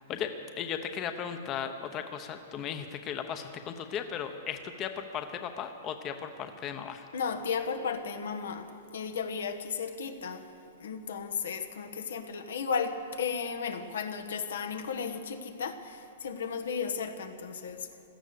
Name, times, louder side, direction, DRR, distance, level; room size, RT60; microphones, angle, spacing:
voice 1, 0.0-7.1, left 8 dB, 25° left, 7 dB, 0.8 m, -36 dB
voice 2, 7.1-10.5 10.8-17.9, left 6 dB, 85° left, 7 dB, 1.3 m, -34 dB
16.5 x 12.5 x 6.8 m, 2.6 s
hypercardioid pair, 155°, 0 cm